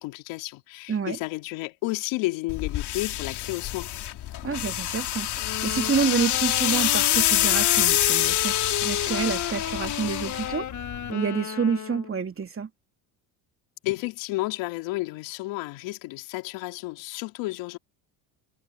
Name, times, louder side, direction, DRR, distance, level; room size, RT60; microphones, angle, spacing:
voice 1, 0.0-3.9 13.8-17.8, left 21 dB, 75° left, 2.7 m, -31 dB
voice 2, 0.9-1.2 4.4-10.7 11.1-12.7, right 6 dB, 30° right, 2.6 m, -28 dB
sound 1, 2.5-11.1, left 13 dB, 60° left, 2.9 m, -26 dB
sound 2, 5.4-12.2, left 8 dB, 40° left, 1.6 m, -33 dB
supercardioid pair, 85°, 46 cm